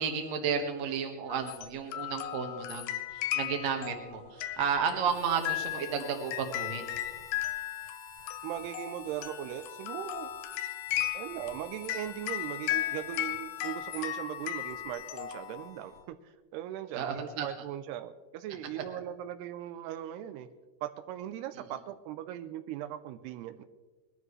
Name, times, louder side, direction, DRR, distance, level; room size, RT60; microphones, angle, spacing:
voice 1, 0.0-6.9 16.9-17.5, right 6 dB, 55° right, 4 dB, 2.2 m, -32 dB
sound 1, 1.3-16.0, left 13 dB, 80° left, 2.2 m, -36 dB
Harmonica, 5.0-16.1, left 3 dB, 55° left, 2.4 m, -51 dB
voice 2, 8.4-10.3 11.1-20.5 20.8-23.6, right 12 dB, 85° right, 10 dB, 2.6 m, -39 dB
20.5 x 12.5 x 3.2 m, 1.2 s
omnidirectional pair, 4.7 m